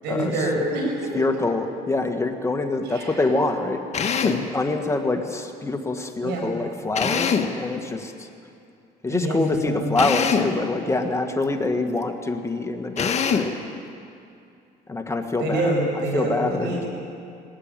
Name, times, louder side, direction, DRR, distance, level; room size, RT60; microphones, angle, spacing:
voice 1, 0.0-1.1 2.8-3.2 6.2-6.4 9.1-9.9 15.4-16.9, right 1 dB, 85° right, -1 dB, 7.9 m, -26 dB
voice 2, 1.1-3.8 4.2-8.3 9.0-13.5 14.9-15.7 16.1-16.8, left 2 dB, 15° left, 4 dB, 1.7 m, -25 dB
Drill, 3.9-4.5 6.9-7.6 10.0-10.6 13.0-13.6, left 6 dB, 40° left, 1.6 m, -23 dB
21.0 x 17.5 x 9.0 m, 2.5 s
cardioid pair, 110°, 17 cm